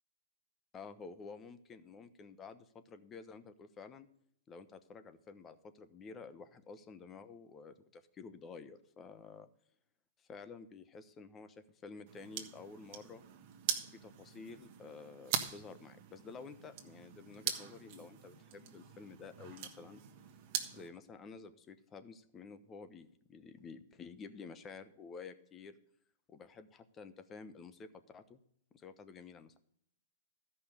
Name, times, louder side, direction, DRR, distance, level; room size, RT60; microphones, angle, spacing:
voice 1, 0.7-4.1 4.5-9.5 10.2-13.2 13.8-20.0 20.7-25.8 26.3-28.4 28.7-29.6, left 5 dB, 25° left, 11 dB, 0.9 m, -51 dB
sound 1, 12.1-20.9, right 9 dB, 50° right, 1.4 m, -42 dB
13.5 x 5.5 x 6.5 m, 0.70 s
hypercardioid pair, 120°, 0 cm